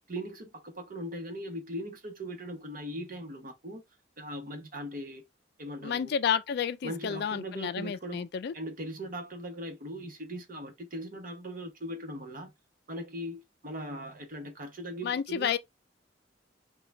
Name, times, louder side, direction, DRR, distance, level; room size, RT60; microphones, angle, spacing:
voice 1, 0.1-3.8 4.2-5.2 5.6-6.1 6.8-8.3 8.5-12.5 12.9-15.5, equal, 50° right, 1.0 m, -39 dB
voice 2, 5.8-8.5 15.0-15.6, left 7 dB, 60° left, 0.3 m, -30 dB
3.7 x 2.3 x 3.1 m
head